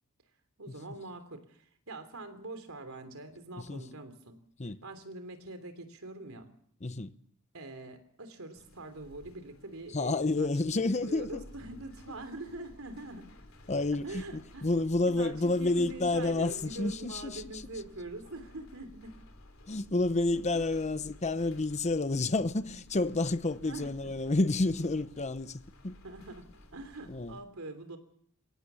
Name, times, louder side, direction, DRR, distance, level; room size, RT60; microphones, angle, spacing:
voice 1, 0.6-4.4 4.6-6.5 7.5-10.5 11.0-13.3 14.0-14.7 15.1-19.2 20.3-20.6 23.6-24.1 26.0-28.0, right 2 dB, 85° right, 3.2 m, -44 dB
voice 2, 6.8-7.1 9.9-11.4 13.7-17.7 19.7-26.0 27.1-27.4, left 2 dB, 35° left, 0.8 m, -30 dB
sound 1, 8.5-27.4, left 1 dB, 70° left, 3.5 m, -55 dB
23.5 x 17.5 x 7.0 m
head